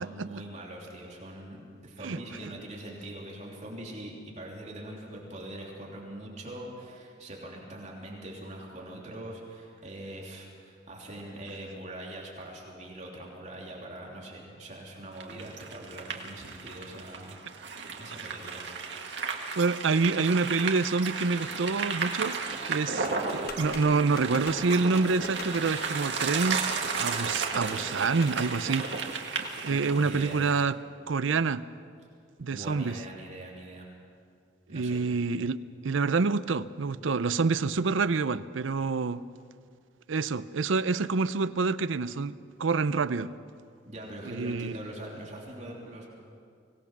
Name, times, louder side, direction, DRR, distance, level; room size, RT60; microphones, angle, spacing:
voice 1, 0.0-17.4 18.0-18.6 29.7-30.4 32.5-33.9 34.7-35.0 43.8-46.1, right 1 dB, 35° right, 3.2 m, -42 dB
sound 1, 15.2-30.6, right 5 dB, 65° right, 1.8 m, -34 dB
voice 2, 19.6-22.4 22.6-28.9 29.6-30.8 31.1-31.6 32.4-33.0 34.7-35.6 35.8-39.2 40.1-42.3 42.6-43.3 44.2-44.8, right 4 dB, 80° right, 0.6 m, -27 dB
sound 2, 23.0-28.5, left 4 dB, 50° left, 1.1 m, -44 dB
24.5 x 18.0 x 6.1 m
head